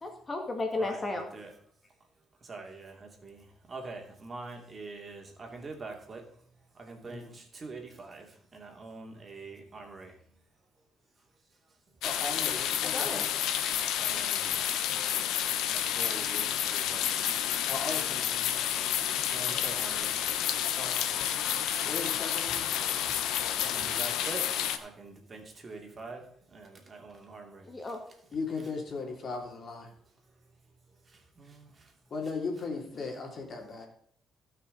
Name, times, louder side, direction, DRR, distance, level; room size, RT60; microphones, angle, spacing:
voice 1, 0.0-1.3 12.8-13.2 27.7-28.0, left 2 dB, 30° left, 3 dB, 1.8 m, -34 dB
voice 2, 0.8-1.5 2.4-6.2 6.7-10.2 14.0-14.5 14.9-15.1 15.7-17.2 19.2-20.1 23.6-24.5 24.7-26.3 26.5-27.7 31.1-31.9, right 3 dB, 35° right, 3 dB, 2.6 m, -44 dB
voice 3, 7.1-7.4 12.0-13.3 17.7-18.7 20.8-21.5 21.8-22.7 28.3-29.9 32.1-33.9, left 4 dB, 50° left, 2 dB, 2.9 m, -37 dB
sound 1, 12.0-24.8, left 10 dB, 90° left, 0.9 m, -30 dB
17.0 x 5.9 x 4.0 m, 0.65 s
cardioid pair, 90°, 0 cm